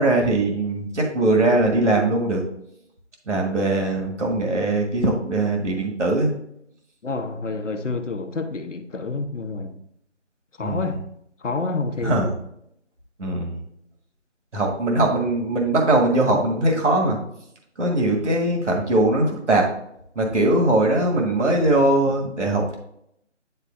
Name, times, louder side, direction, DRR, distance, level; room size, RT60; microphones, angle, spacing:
voice 1, 0.0-2.4 3.3-6.3 10.6-10.9 12.0-12.3 13.2-13.6 14.5-17.2 17.8-19.7 20.2-22.8, right 2 dB, 75° right, 1.7 m, -21 dB
voice 2, 7.0-9.8 10.6-11.0 11.4-12.3, left 3 dB, 80° left, 0.9 m, -28 dB
9.8 x 4.1 x 2.6 m
figure-of-eight pair, 160°, 36 cm